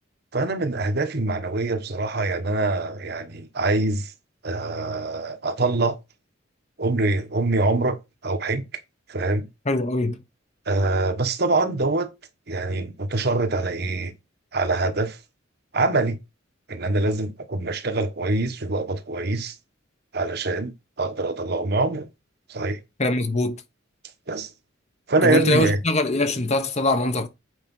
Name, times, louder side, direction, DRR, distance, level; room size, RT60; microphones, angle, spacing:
voice 1, 0.3-4.1 4.4-6.0 6.8-8.6 9.1-9.5 10.7-12.1 12.5-14.1 14.5-15.2 15.7-16.2 16.7-19.6 20.1-22.1 22.5-22.8 24.3-24.5 25.1-25.8, right 2 dB, 55° right, 1.3 m, -24 dB
voice 2, 9.7-10.2 23.0-23.6 25.2-27.3, left 2 dB, 35° left, 1.1 m, -22 dB
8.2 x 5.0 x 5.5 m
head